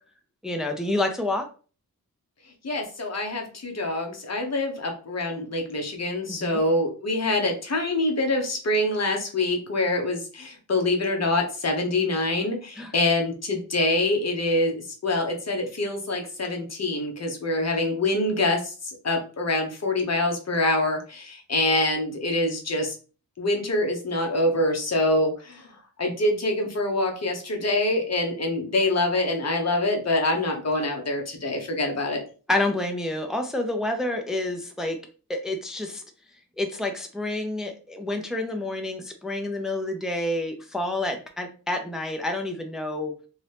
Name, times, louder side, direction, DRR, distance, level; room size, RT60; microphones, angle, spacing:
voice 1, 0.4-1.5 6.4-6.6 12.8-12.9 32.5-35.0 35.3-36.0 36.6-43.1, left 2 dB, ahead, 4 dB, 0.4 m, -28 dB
voice 2, 2.6-23.0 23.4-32.2, left 2 dB, 45° left, 3 dB, 0.9 m, -25 dB
2.9 x 2.7 x 3.3 m, 0.37 s
wide cardioid pair, 110°, 38 cm